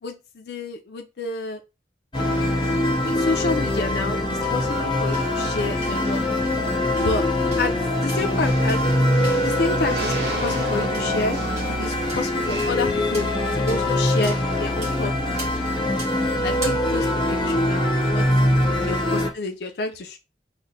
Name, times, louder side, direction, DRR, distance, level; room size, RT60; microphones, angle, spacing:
voice 1, 0.0-1.6 3.0-6.2 7.0-7.3 7.6-8.8 9.4-10.1 10.4-11.4 11.8-15.6 16.4-18.3 18.8-20.2, left 3 dB, 70° left, 4 dB, 0.4 m, -29 dB
sound 1, 2.1-19.3, left 1 dB, 25° left, 0.6 m, -23 dB
sound 2, 2.1-12.7, right 2 dB, 70° right, 0.8 m, -36 dB
sound 3, 2.9-17.7, right 2 dB, 35° right, 1.7 m, -43 dB
4.2 x 2.1 x 2.6 m, 0.27 s
head